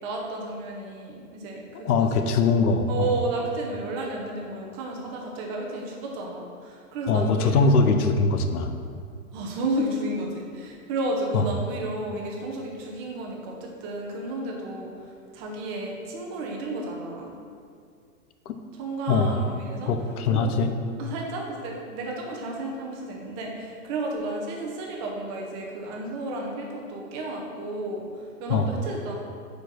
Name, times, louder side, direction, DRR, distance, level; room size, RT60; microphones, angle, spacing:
voice 1, 0.0-2.2 2.9-7.9 9.3-17.3 18.7-19.9 20.3-20.5 21.0-29.1, right 2 dB, 20° right, -1 dB, 0.6 m, -32 dB
voice 2, 1.8-3.1 7.1-8.7 11.3-11.4 18.5-18.6 19.1-19.4 19.8-20.7 28.5-28.7, left 4 dB, 85° left, 7 dB, 0.8 m, -22 dB
4.8 x 4.7 x 6.0 m, 2.3 s
hypercardioid pair, 160°, 44 cm